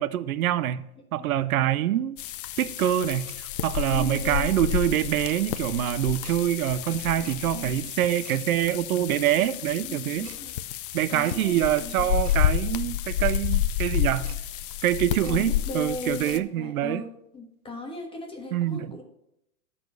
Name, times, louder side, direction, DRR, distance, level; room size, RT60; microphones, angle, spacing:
voice 1, 0.0-2.2 2.6-3.3 3.6-10.3 10.9-14.4 14.8-17.0 18.5-18.9, right 12 dB, 70° right, 0.7 m, -25 dB
sound 1, 2.2-16.4, left 12 dB, 40° left, 0.5 m, -30 dB
Tick-tock, 3.2-3.4 4.2-4.4 5.2-5.4 6.2-6.4 7.2-7.4 8.2-8.4 9.2-9.4 10.2-10.4 11.2-11.4 12.2-12.4 13.2-13.4 14.2-14.4 15.2-15.4 16.2-16.4, right 11 dB, 30° right, 0.4 m, -46 dB
voice 2, 3.9-4.5 9.8-10.5 11.1-12.1 15.2-17.1 17.3-19.0, left 2 dB, 10° left, 1.3 m, -37 dB
12.0 x 4.4 x 6.8 m
hypercardioid pair, 135°, 44 cm